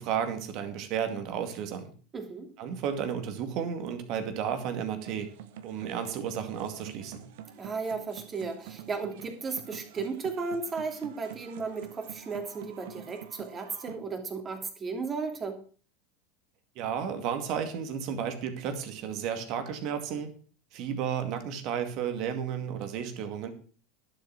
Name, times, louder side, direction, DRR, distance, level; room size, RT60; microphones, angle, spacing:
voice 1, 0.0-1.9 2.6-5.3 5.6-7.2 16.8-20.3 20.7-23.5, right 8 dB, 55° right, 7 dB, 2.3 m, -33 dB
voice 2, 2.1-2.5 7.6-15.6, right 4 dB, 30° right, 4 dB, 3.0 m, -35 dB
sound 1, 5.0-14.0, right 10 dB, 70° right, 1.2 m, -47 dB
11.0 x 7.5 x 5.9 m, 0.41 s
hypercardioid pair, 90°, 0 cm